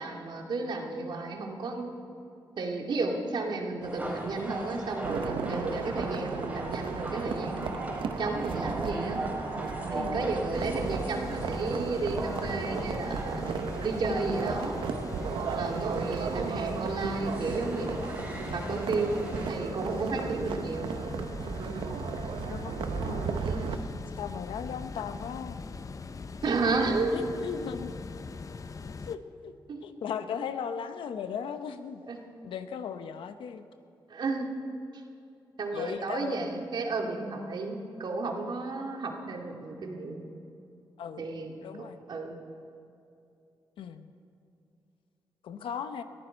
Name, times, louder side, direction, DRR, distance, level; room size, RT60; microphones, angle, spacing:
voice 1, 0.0-1.9 2.6-7.6 8.2-9.2 9.8-13.4 13.8-14.8 15.4-18.0 18.5-19.2 19.5-20.9 23.5-23.6 26.4-27.1 29.7-29.8 32.1-32.2 34.1-34.5 35.6-40.2 41.2-41.5 41.8-42.4, right 3 dB, 65° right, 1 dB, 2.2 m, -32 dB
sound 1, 3.8-19.5, right 1 dB, 15° right, 4.3 m, -39 dB
sound 2, 5.0-23.8, right 6 dB, 80° right, 0.9 m, -35 dB
voice 2, 10.0-10.3 18.6-18.8 22.5-23.4 23.7-23.8 24.2-25.6 27.1-27.9 28.8-29.5 29.8-32.0 32.4-33.6 35.7-36.4 41.0-41.3 41.6-42.0 43.8-44.1 45.4-46.0, left 7 dB, 90° left, 9 dB, 0.9 m, -37 dB
sound 3, 10.5-29.2, left 4 dB, 40° left, 0.6 m, -41 dB
21.0 x 14.5 x 4.6 m, 2.6 s
cardioid pair, 80°, 9 cm